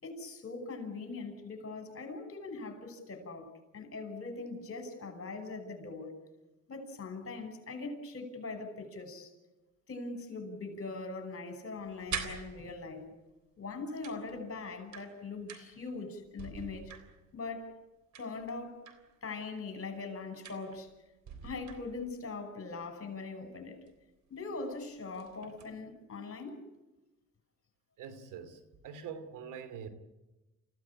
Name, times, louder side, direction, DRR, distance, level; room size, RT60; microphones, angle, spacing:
voice 1, 0.0-6.1 6.7-9.3 9.9-13.1 13.6-16.9 17.3-17.8 18.2-18.8 19.2-20.9 21.4-23.8 24.3-26.6, left 3 dB, 45° left, 6.0 m, -41 dB
sound 1, 11.7-13.1 14.0-15.9 16.2-17.5 18.1-19.1 20.4-20.9 21.3-22.3 23.9-24.0 24.4-24.6 25.0-25.8, right 7 dB, 65° right, 3.6 m, -45 dB
voice 2, 28.0-29.9, right 7 dB, 90° right, 2.8 m, -44 dB
28.5 x 16.0 x 8.6 m
cardioid pair, 90°, 30 cm